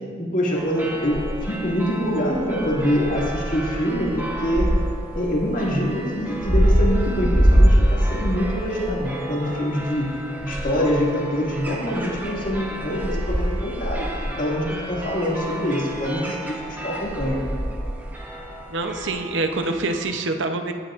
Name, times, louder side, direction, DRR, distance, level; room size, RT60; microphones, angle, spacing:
voice 1, 0.2-4.7 5.1-10.1 10.4-17.4, equal, 45° left, -4 dB, 2.2 m, -25 dB
sound 1, 0.5-20.0, equal, 10° right, 0.9 m, -25 dB
voice 2, 18.7-20.7, right 2 dB, 70° right, 6 dB, 0.8 m, -25 dB
16.5 x 9.8 x 2.5 m, 2.1 s
head